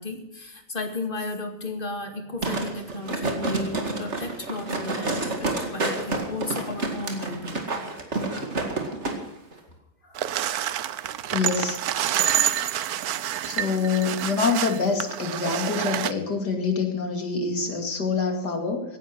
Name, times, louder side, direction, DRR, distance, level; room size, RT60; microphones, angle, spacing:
voice 1, 0.0-7.8 10.0-10.7 11.1-11.4, left 2 dB, 30° left, 5 dB, 2.2 m, -34 dB
sound 1, 2.4-9.2 9.5-9.6, right 2 dB, 45° right, 2.4 m, -29 dB
sound 2, 10.2-16.1, right 11 dB, 70° right, 1.2 m, -27 dB
voice 2, 11.3-11.8 13.5-19.0, left 5 dB, 80° left, 4 dB, 3.1 m, -26 dB
17.0 x 10.5 x 6.1 m, 0.96 s
omnidirectional pair, 1.8 m